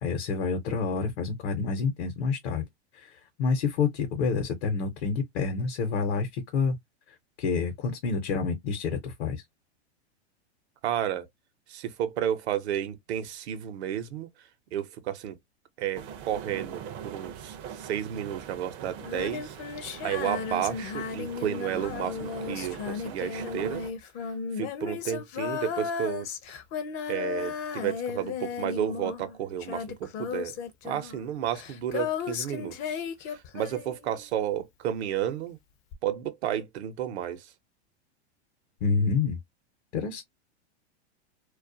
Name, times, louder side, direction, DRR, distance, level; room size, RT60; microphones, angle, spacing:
voice 1, 0.0-2.6 2.9-6.8 7.4-9.4 38.8-39.4 39.9-40.2, left 5 dB, 65° left, 0.8 m, -28 dB
voice 2, 10.8-11.3 11.7-14.3 14.7-15.4 15.8-19.6 20.0-23.8 24.6-26.3 27.1-30.6 30.8-35.6 36.0-37.5, right 10 dB, 75° right, 0.7 m, -32 dB
sound 1, 15.9-23.9, right 8 dB, 35° right, 0.4 m, -42 dB
Female singing, 19.0-34.4 35.9-36.0, left 6 dB, 35° left, 0.4 m, -35 dB
2.3 x 2.1 x 2.6 m
hypercardioid pair, 135°, 33 cm